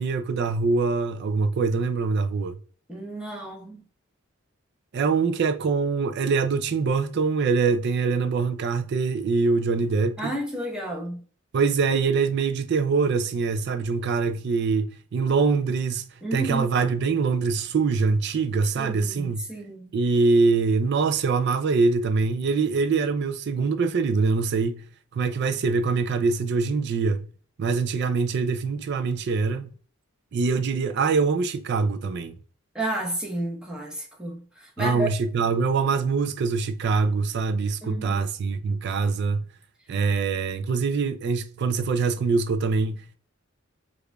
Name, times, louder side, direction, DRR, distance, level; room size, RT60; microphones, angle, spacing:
voice 1, 0.0-2.6 4.9-10.3 11.5-16.0 16.3-19.4 19.9-24.9 25.1-27.3 27.6-29.7 30.3-32.4 34.8-39.4 39.9-43.2, right 4 dB, 55° right, 0.4 m, -24 dB
voice 2, 2.9-3.8 10.2-11.2 16.2-16.7 18.8-20.0 32.7-35.1 37.8-38.2, right 1 dB, 5° right, 0.9 m, -32 dB
4.8 x 2.4 x 2.3 m
head